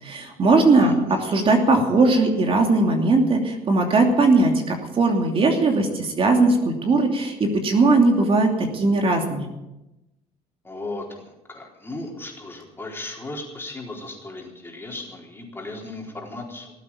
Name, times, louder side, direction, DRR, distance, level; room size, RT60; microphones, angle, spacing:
voice 1, 0.0-9.5, right 3 dB, 40° right, 2 dB, 2.9 m, -19 dB
voice 2, 0.8-1.5 10.6-16.7, left 2 dB, 15° left, -1 dB, 4.1 m, -36 dB
18.5 x 8.4 x 8.8 m, 0.98 s
cardioid pair, 105°, 14 cm